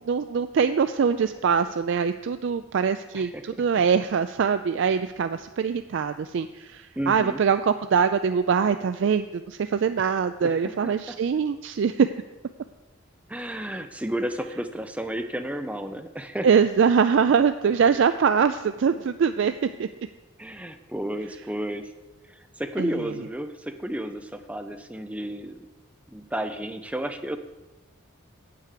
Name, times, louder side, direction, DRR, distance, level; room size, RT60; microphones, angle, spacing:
voice 1, 0.0-12.1 16.4-19.9 22.8-22.9, right 6 dB, 60° right, 10 dB, 0.3 m, -23 dB
voice 2, 3.1-3.5 7.0-7.4 10.4-11.2 13.3-16.5 20.4-21.9 22.3-25.6 26.1-27.4, right 1 dB, 5° right, 7 dB, 0.6 m, -32 dB
8.1 x 7.6 x 6.6 m, 1.1 s
head